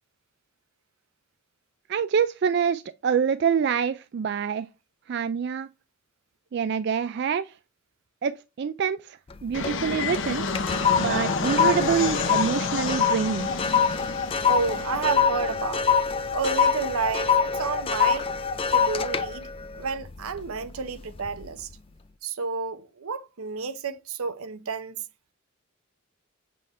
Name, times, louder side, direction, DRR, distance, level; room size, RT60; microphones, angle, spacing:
voice 1, 1.9-4.7 5.1-5.7 6.5-7.5 8.2-8.3 8.6-10.4 11.0-13.5, right 7 dB, 50° right, 0.3 m, -26 dB
sound 1, 9.3-9.8 10.1-20.7 21.2-21.5, left 6 dB, 25° left, 0.4 m, -25 dB
Fixed-wing aircraft airplane, 9.5-18.6, left 4 dB, 60° left, 0.8 m, -32 dB
voice 2, 14.5-15.9 16.3-18.3 18.7-19.5 19.7-21.7 22.2-25.0, right 5 dB, 80° right, 0.7 m, -30 dB
7.6 x 3.5 x 4.2 m
head